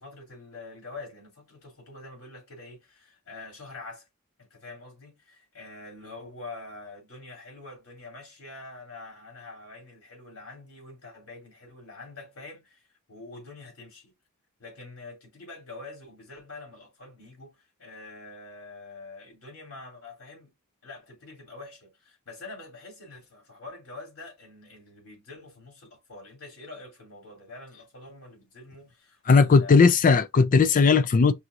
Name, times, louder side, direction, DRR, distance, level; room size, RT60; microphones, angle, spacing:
voice 1, 0.0-4.1 4.4-14.1 14.6-20.5 20.8-30.1, left 3 dB, 80° left, 2.7 m, -45 dB
voice 2, 29.3-31.3, left 4 dB, 40° left, 0.3 m, -18 dB
5.4 x 2.9 x 2.5 m
head